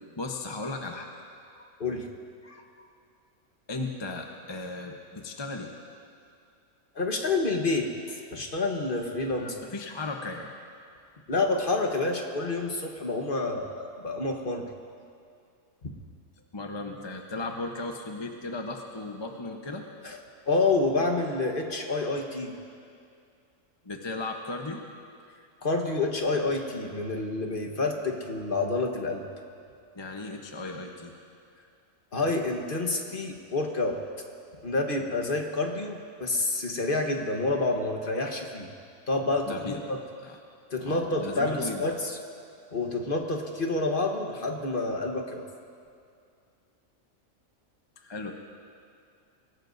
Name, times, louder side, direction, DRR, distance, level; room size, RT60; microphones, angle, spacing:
voice 1, 0.1-1.1 3.7-5.7 9.6-10.5 16.5-19.8 23.8-24.8 29.9-31.1 39.5-39.8 40.2-40.4 40.9-41.8 48.0-48.3, left 3 dB, 25° left, 2 dB, 0.8 m, -36 dB
voice 2, 6.9-9.6 11.3-14.6 15.8-15.9 20.0-20.2 20.5-22.5 25.6-29.2 32.1-34.0 34.6-38.7 39.1-40.0 40.7-42.2 42.7-45.4, left 2 dB, 40° left, 2 dB, 1.3 m, -28 dB
24.5 x 17.5 x 2.6 m, 2.4 s
omnidirectional pair, 1.5 m